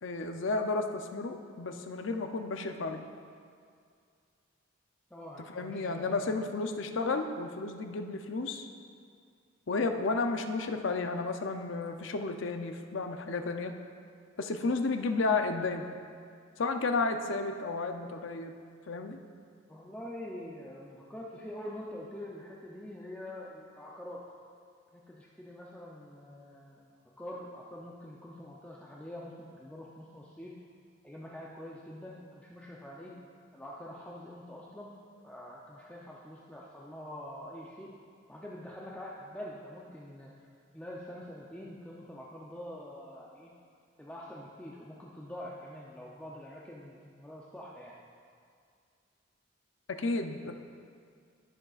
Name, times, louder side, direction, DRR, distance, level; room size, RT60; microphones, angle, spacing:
voice 1, 0.0-3.0 5.5-8.7 9.7-13.7 14.4-15.9 16.6-18.5 18.9-19.2 49.9-50.5, left 3 dB, 75° left, 6 dB, 0.6 m, -32 dB
voice 2, 5.1-6.4 19.7-24.2 24.9-26.9 27.2-30.5 31.0-33.1 33.5-34.9 35.2-37.9 38.3-40.3 40.7-43.5 44.0-48.0, left 1 dB, 5° left, -5 dB, 0.5 m, -45 dB
15.5 x 6.4 x 2.4 m, 2.3 s
head